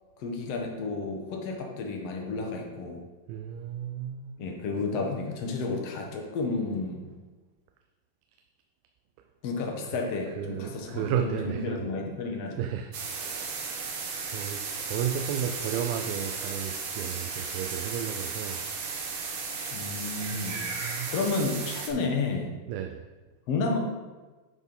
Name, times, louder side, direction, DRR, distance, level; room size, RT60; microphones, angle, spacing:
voice 1, 0.2-3.0 4.4-7.1 9.4-12.6 19.7-22.5 23.5-23.8, left 3 dB, 60° left, 1 dB, 1.7 m, -31 dB
voice 2, 3.3-4.4 9.9-10.0 10.4-11.9 12.6-13.5 13.8-18.6 20.3-21.1 22.7-23.0, right 9 dB, 90° right, 5 dB, 2.4 m, -33 dB
sound 1, 12.9-21.9, right 5 dB, 65° right, 2.2 m, -35 dB
11.0 x 4.2 x 5.3 m, 1.3 s
omnidirectional pair, 4.2 m